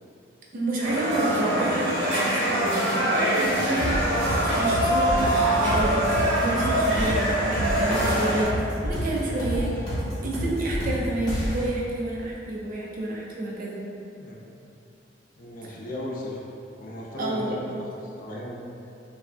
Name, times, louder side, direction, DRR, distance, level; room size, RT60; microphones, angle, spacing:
voice 1, 0.5-4.1 4.4-5.3 5.6-6.0 6.4-7.2 7.6-8.5 8.8-9.7 10.2-13.8 17.2-17.7, right 1 dB, 50° right, -4 dB, 0.5 m, -29 dB
sound 1, 0.8-8.4, right 1 dB, 80° right, 0.8 m, -24 dB
sound 2, 3.4-11.7, equal, 25° left, 1.0 m, -30 dB
voice 2, 15.3-16.4 16.8-18.6, left 1 dB, 45° left, -4 dB, 0.5 m, -36 dB
3.2 x 2.4 x 2.3 m, 2.6 s
head